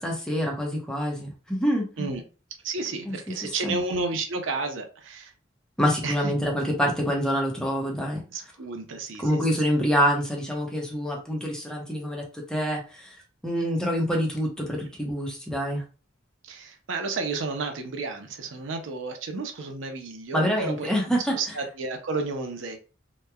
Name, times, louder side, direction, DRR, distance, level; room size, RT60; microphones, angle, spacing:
voice 1, 0.0-2.2 3.1-3.8 5.8-8.2 9.2-13.2 13.4-15.8 20.3-21.6, equal, 5° left, -1 dB, 0.7 m, -26 dB
voice 2, 2.6-5.3 6.0-6.3 8.3-9.3 16.4-22.8, right 3 dB, 85° right, 5 dB, 0.6 m, -32 dB
2.9 x 2.2 x 2.3 m, 0.33 s
head